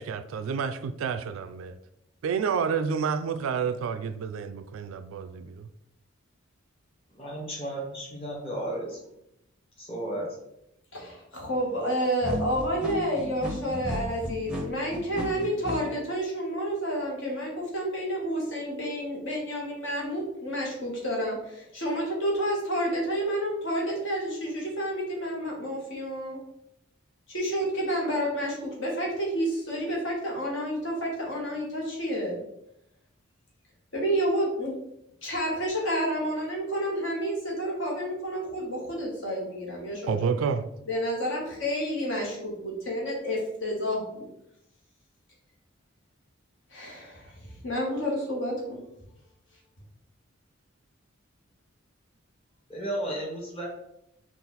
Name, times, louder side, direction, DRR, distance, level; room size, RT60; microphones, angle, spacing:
voice 1, 0.0-1.8 2.2-5.5 40.1-40.7, right 6 dB, 80° right, 0.3 m, -29 dB
voice 2, 7.1-9.0 9.8-10.3 52.7-53.7, right 1 dB, 25° left, 1.2 m, -33 dB
voice 3, 10.9-26.4 27.3-32.4 33.9-34.8 35.2-40.4 40.9-44.3 46.7-48.8, equal, 60° left, 1.3 m, -30 dB
sound 1, 12.2-15.8, equal, 5° right, 0.7 m, -33 dB
4.0 x 2.5 x 3.9 m
head